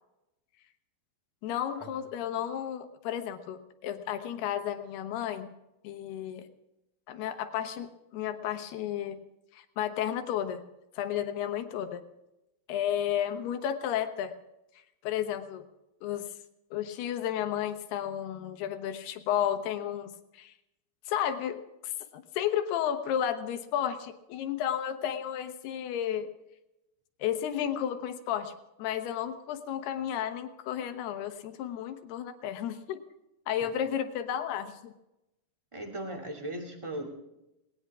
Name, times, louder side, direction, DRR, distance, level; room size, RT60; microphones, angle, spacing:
voice 1, 1.4-5.5 5.8-6.5 7.1-9.2 9.5-10.6 11.0-12.0 12.7-14.3 15.0-15.6 16.0-16.2 16.7-20.5 21.1-26.3 27.2-28.5 28.8-33.0 33.5-34.9, left 10 dB, 80° left, 8 dB, 3.2 m, -32 dB
voice 2, 35.7-37.1, right 1 dB, 10° right, 1 dB, 1.6 m, -38 dB
19.5 x 19.0 x 3.6 m, 0.92 s
omnidirectional pair, 4.6 m